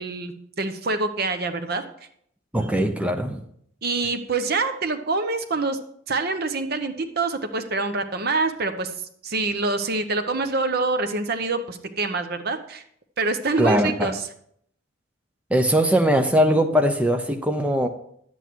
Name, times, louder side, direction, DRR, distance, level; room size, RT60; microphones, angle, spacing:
voice 1, 0.0-1.8 3.8-5.8 6.1-8.9 9.2-12.8 13.2-14.2, right 3 dB, 50° right, 8 dB, 0.8 m, -26 dB
voice 2, 2.5-3.4 13.6-14.2 15.5-17.9, equal, 5° right, 5 dB, 0.7 m, -20 dB
11.0 x 8.1 x 4.6 m, 0.69 s
head